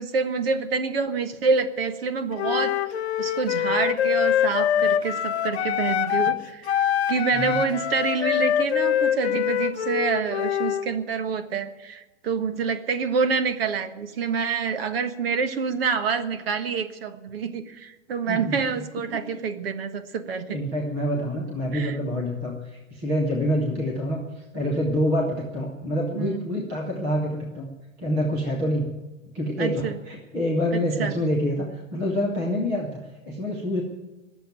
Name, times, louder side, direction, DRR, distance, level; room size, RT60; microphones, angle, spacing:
voice 1, 0.0-6.7 7.1-20.6 21.7-22.0 26.1-26.5 29.6-30.0 30.7-31.1, right 5 dB, 45° right, 9 dB, 1.5 m, -27 dB
Wind instrument woodwind instrument, 2.4-6.4 6.7-10.9, left 10 dB, 55° left, 0.9 m, -24 dB
voice 2, 20.5-27.7 28.0-28.9 29.3-32.9 33.2-33.8, equal, 5° right, -3 dB, 0.4 m, -26 dB
21.0 x 7.1 x 9.1 m, 1.1 s
hypercardioid pair, 170°, 39 cm